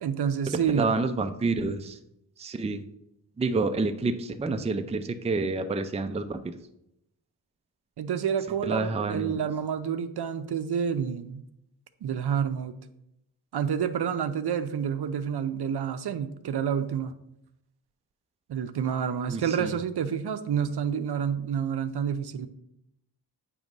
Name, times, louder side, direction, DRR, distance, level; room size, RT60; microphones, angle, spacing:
voice 1, 0.0-0.9 8.0-11.4 12.0-12.8 13.5-17.1 18.5-22.5, right 8 dB, 75° right, 11 dB, 0.6 m, -29 dB
voice 2, 0.7-2.0 2.4-2.8 3.4-6.6 8.6-9.3 19.3-19.8, right 3 dB, 15° right, 8 dB, 0.4 m, -28 dB
8.3 x 3.0 x 5.2 m, 0.81 s
wide cardioid pair, 110°, 40 cm